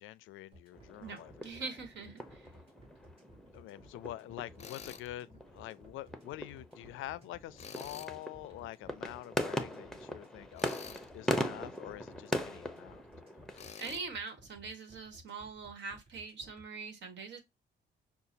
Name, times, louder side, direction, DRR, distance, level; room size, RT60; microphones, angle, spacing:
voice 1, 0.0-1.5 3.5-13.0, left 15 dB, 85° left, 0.4 m, -46 dB
sound 1, 0.5-16.6, equal, 30° right, 2.8 m, -58 dB
sound 2, 0.7-13.7, equal, ahead, 0.7 m, -40 dB
voice 2, 1.0-2.5 13.8-17.4, right 4 dB, 65° right, 1.5 m, -43 dB
Tools, 4.6-5.1 7.6-8.2 10.6-11.1 13.5-14.0, left 7 dB, 35° left, 0.5 m, -47 dB
6.6 x 2.4 x 2.7 m
cardioid pair, 90°, 20 cm